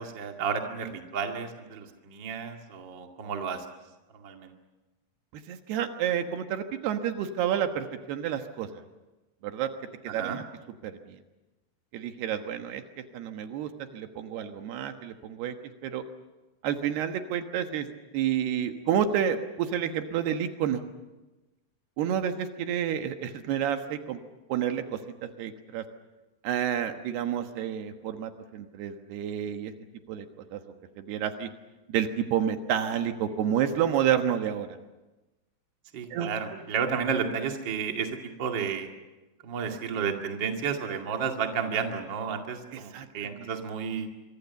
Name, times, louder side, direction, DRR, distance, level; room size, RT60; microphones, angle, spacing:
voice 1, 0.0-3.7 4.1-4.5 10.1-10.4 35.9-38.9 39.4-44.1, right 6 dB, 35° right, 3 dB, 2.2 m, -32 dB
voice 2, 5.3-8.7 9.4-9.7 10.0-10.4 10.8-11.2 11.9-12.8 13.1-15.5 15.8-16.0 16.6-17.9 18.1-20.8 22.0-24.2 24.5-25.8 26.4-29.7 30.1-30.3 30.5-30.6 31.0-31.5 31.9-34.7 36.1-36.3 42.7-43.5, right 9 dB, 80° right, 7 dB, 3.4 m, -29 dB
26.0 x 24.0 x 7.1 m, 1.1 s
omnidirectional pair, 4.7 m